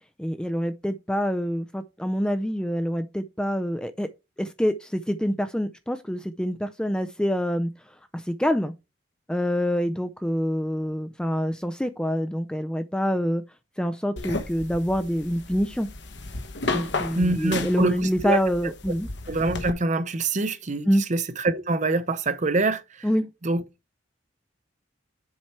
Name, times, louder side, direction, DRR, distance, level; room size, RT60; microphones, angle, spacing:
voice 1, 0.2-4.1 4.4-7.7 8.1-8.7 9.3-13.4 13.8-15.9 16.7-19.1 20.9-21.0 23.0-23.3, equal, 5° left, 0.4 m, -26 dB
sound 1, 14.2-19.7, left 3 dB, 60° left, 1.1 m, -33 dB
voice 2, 17.1-18.4 18.6-18.7 19.3-23.1 23.4-23.6, right 2 dB, 40° right, 0.7 m, -25 dB
7.3 x 4.5 x 4.5 m
head